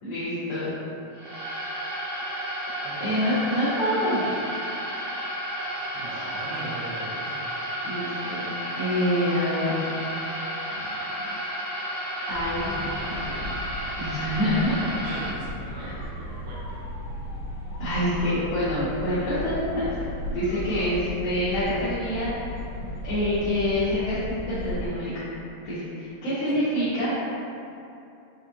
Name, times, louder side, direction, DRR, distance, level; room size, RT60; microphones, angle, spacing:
voice 1, 0.0-0.7 3.0-4.3 6.1-6.2 7.8-9.8 12.3-13.5 14.0-14.8 17.8-19.9 20.3-22.3 23.0-24.2 24.5-25.1 25.6-27.2, equal, 70° left, -13 dB, 2.3 m, -26 dB
sound 1, 1.1-15.3, equal, 60° right, 2.0 m, -32 dB
voice 2, 2.8-3.4 5.9-7.4 10.7-11.4 14.8-16.8 26.5-26.6, right 2 dB, 80° right, -7 dB, 2.4 m, -40 dB
sound 2, 12.3-24.9, left 1 dB, 90° left, 2.2 m, -36 dB
6.9 x 2.4 x 2.7 m, 2.7 s
omnidirectional pair, 5.3 m